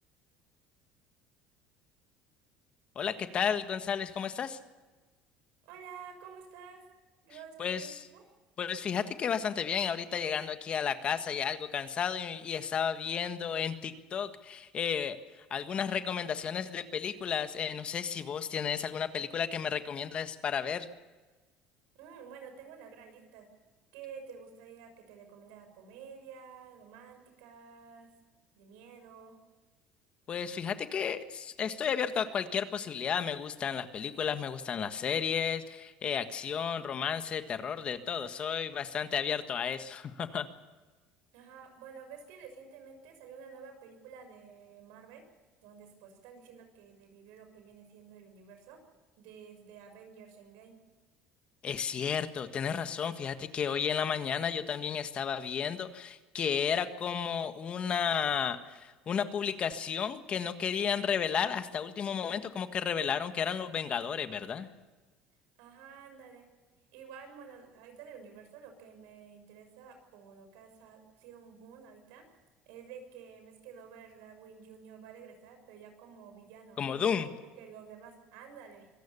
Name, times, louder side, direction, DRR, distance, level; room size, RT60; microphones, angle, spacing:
voice 1, 2.9-4.6 7.6-8.0 8.6-20.9 30.3-40.5 51.6-64.7 76.8-77.3, left 7 dB, 40° left, 9 dB, 1.6 m, -33 dB
voice 2, 5.6-6.8 7.2-8.2 21.9-23.5 23.9-28.1 28.5-29.4 41.3-45.2 45.6-48.8 49.2-50.7 65.6-66.5 66.9-72.3 72.6-78.9, right 6 dB, 80° right, 6 dB, 6.4 m, -51 dB
25.0 x 17.0 x 7.0 m, 1.3 s
cardioid pair, 115°, 3 cm